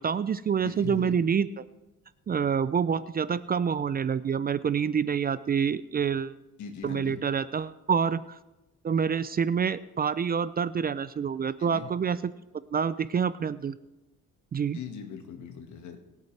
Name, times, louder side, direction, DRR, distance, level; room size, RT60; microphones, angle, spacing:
voice 1, 0.0-1.5 2.3-6.4 6.8-8.4 8.8-12.3 12.7-13.7 14.5-14.8, right 7 dB, 30° right, 16 dB, 0.4 m, -27 dB
voice 2, 0.6-1.2 6.6-7.2 11.6-11.9 14.7-16.0, left 7 dB, 70° left, 5 dB, 1.7 m, -39 dB
22.5 x 8.4 x 3.3 m, 1.0 s
cardioid pair, 90°, 30 cm